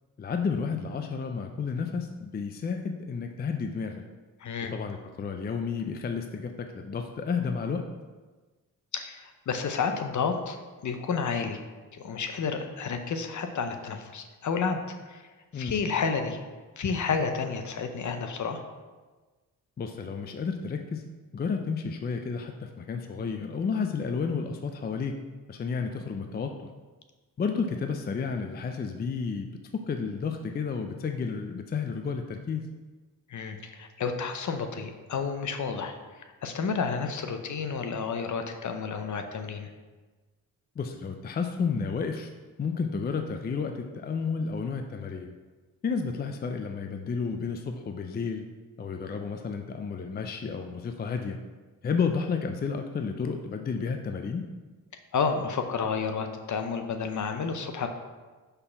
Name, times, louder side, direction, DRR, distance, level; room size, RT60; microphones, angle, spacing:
voice 1, 0.2-4.0 4.7-7.8 15.5-15.8 19.8-21.0 21.3-25.2 25.5-26.7 27.4-32.7 40.8-42.3 42.6-45.3 45.8-48.5 48.8-51.4 51.8-54.4, left 5 dB, 30° left, 5 dB, 0.4 m, -31 dB
voice 2, 4.4-4.7 8.9-10.6 10.8-11.6 11.9-14.8 15.1-15.2 15.5-16.4 16.8-18.6 33.3-36.0 36.4-39.7 55.1-57.9, left 5 dB, 55° left, 6 dB, 0.8 m, -30 dB
5.5 x 4.2 x 5.7 m, 1.3 s
cardioid pair, 105°, 36 cm